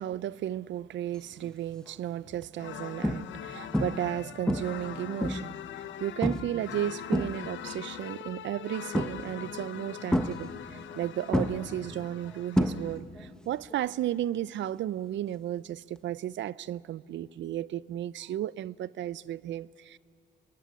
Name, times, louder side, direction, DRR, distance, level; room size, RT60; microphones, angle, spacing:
voice 1, 0.0-20.0, right 12 dB, 70° right, 0.6 m, -34 dB
sound 1, 1.4-1.7 2.3-2.4 3.0-3.5 3.7-4.1 4.5-5.6 6.2-6.6 6.9-7.7 8.9-9.5 10.1-11.0 11.3-13.2 13.5-13.9 16.0-16.1, equal, 5° left, 1.2 m, -29 dB
sound 2, 2.6-13.0, left 11 dB, 70° left, 0.8 m, -42 dB
26.0 x 19.5 x 9.4 m
cardioid pair, 90°, 20 cm